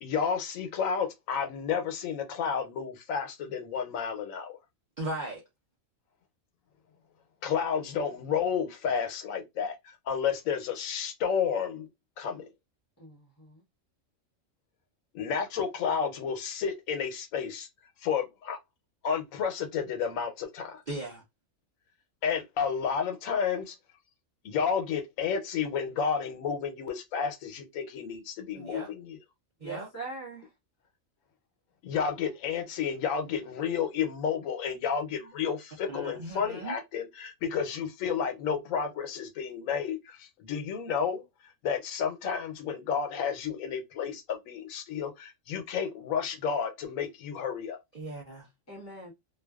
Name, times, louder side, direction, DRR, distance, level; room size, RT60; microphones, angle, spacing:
voice 1, 0.0-4.6 7.4-11.9 12.2-12.5 15.1-17.7 18.0-18.6 19.0-20.8 22.2-23.8 24.4-29.2 31.8-47.8, left 7 dB, 90° left, 1.0 m, -31 dB
voice 2, 5.0-5.4 20.9-21.2 28.5-28.9 29.6-29.9 35.9-36.7 47.9-48.5, right 2 dB, 45° right, 0.6 m, -37 dB
voice 3, 13.0-13.6 29.6-30.5 48.7-49.1, right 2 dB, 20° left, 0.4 m, -42 dB
2.5 x 2.2 x 2.2 m
omnidirectional pair, 1.3 m